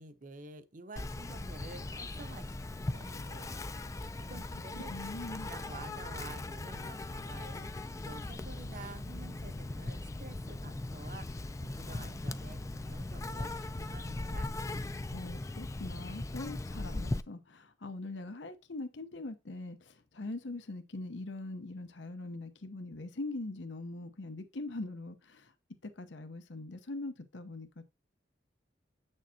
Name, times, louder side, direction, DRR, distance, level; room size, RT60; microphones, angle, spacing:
voice 1, 0.0-3.6 4.3-4.9 5.5-14.5, right 2 dB, 45° right, 0.8 m, -50 dB
Insect, 1.0-17.2, left 2 dB, 15° left, 0.3 m, -39 dB
voice 2, 4.9-5.5 15.1-25.5 25.8-27.8, left 2 dB, 80° left, 0.8 m, -42 dB
8.4 x 6.4 x 2.8 m
head